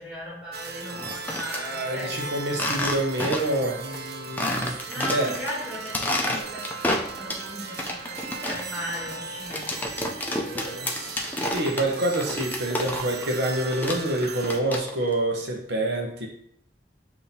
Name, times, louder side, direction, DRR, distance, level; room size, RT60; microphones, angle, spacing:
voice 1, 0.0-2.6 4.9-9.9, equal, 5° right, -7 dB, 1.6 m, -37 dB
sound 1, 0.5-14.6, right 4 dB, 60° right, 0.4 m, -38 dB
sound 2, 0.9-1.6 2.5-3.6 3.9-4.0 4.4-5.5 5.8-7.5 7.8-13.3 13.5-15.1, left 1 dB, 10° left, 0.4 m, -30 dB
voice 2, 1.5-4.7 5.1-5.3 6.3-6.4 10.3-16.3, right 1 dB, 80° right, 1 dB, 0.8 m, -27 dB
6.9 x 2.8 x 2.8 m, 0.69 s
head